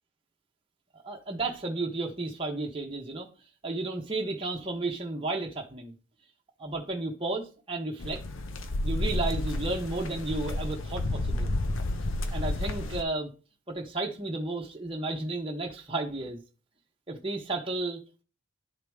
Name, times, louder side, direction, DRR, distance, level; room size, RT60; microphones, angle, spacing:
voice 1, 0.9-3.3 3.6-6.0 6.6-8.2 8.8-11.5 12.3-13.3 13.7-16.4 17.1-18.2, right 2 dB, 25° right, 1.0 m, -33 dB
sound 1, 8.0-13.0, left 1 dB, 65° left, 0.8 m, -31 dB
11.0 x 4.8 x 3.6 m
head